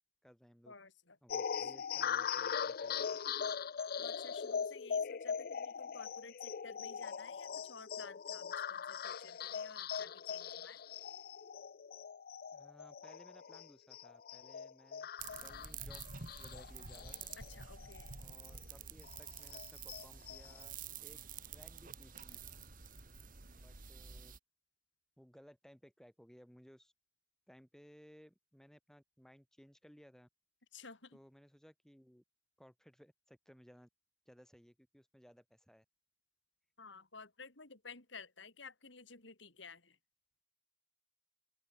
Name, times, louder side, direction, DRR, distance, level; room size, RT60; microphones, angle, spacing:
voice 1, 0.0-0.8 1.2-3.1 12.5-16.0 16.4-17.4 18.2-20.8 21.0-21.2 21.5-22.6 23.6-24.3 25.2-26.9 27.5-30.3 31.1-32.2 32.6-33.9 34.3-35.9, equal, 5° left, 3.8 m, -61 dB
voice 2, 0.7-1.2 4.0-10.8 17.4-18.2 30.7-31.2 36.8-40.0, left 4 dB, 75° left, 3.6 m, -54 dB
sound 1, 1.3-18.2 18.5-18.6 19.0-20.6, left 7 dB, 50° left, 0.5 m, -41 dB
sound 2, 15.2-24.4, right 6 dB, 50° right, 1.8 m, -49 dB
open air
head